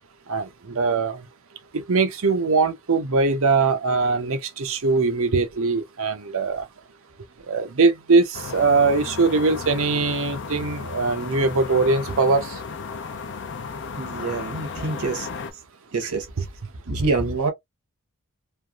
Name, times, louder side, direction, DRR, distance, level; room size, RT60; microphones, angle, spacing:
voice 1, 0.3-1.2 1.7-6.6 7.5-12.5 16.0-16.1, right 4 dB, 65° right, 0.7 m, -21 dB
sound 1, 8.3-15.5, left 5 dB, 55° left, 0.6 m, -34 dB
voice 2, 14.0-15.3 15.9-16.3 16.9-17.5, right 3 dB, 85° right, 1.1 m, -26 dB
3.3 x 2.6 x 2.4 m
head